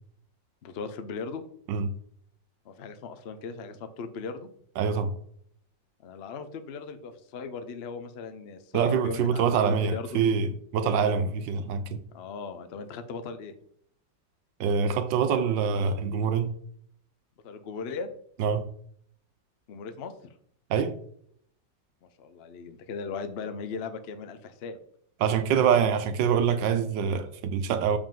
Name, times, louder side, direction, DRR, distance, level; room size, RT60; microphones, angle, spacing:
voice 1, 0.6-1.4 2.7-4.5 6.0-10.3 12.1-13.6 17.4-18.1 19.7-20.1 22.2-24.8, left 5 dB, 75° left, 0.5 m, -38 dB
voice 2, 4.8-5.1 8.7-12.0 14.6-16.5 18.4-18.6 20.7-21.0 25.2-28.0, right 7 dB, 80° right, 1.3 m, -25 dB
7.2 x 5.0 x 3.7 m
omnidirectional pair, 2.0 m